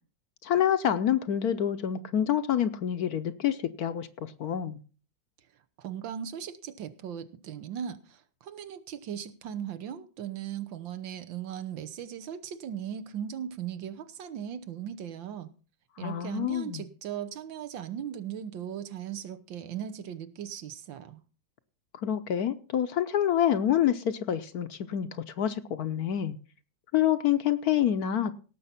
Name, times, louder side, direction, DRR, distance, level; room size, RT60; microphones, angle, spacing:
voice 1, 0.4-4.8 16.0-16.8 22.0-26.4 26.9-28.3, left 10 dB, 65° left, 1.1 m, -27 dB
voice 2, 5.8-15.5 16.0-21.2, right 9 dB, 85° right, 1.8 m, -38 dB
17.5 x 7.0 x 5.8 m
omnidirectional pair, 2.1 m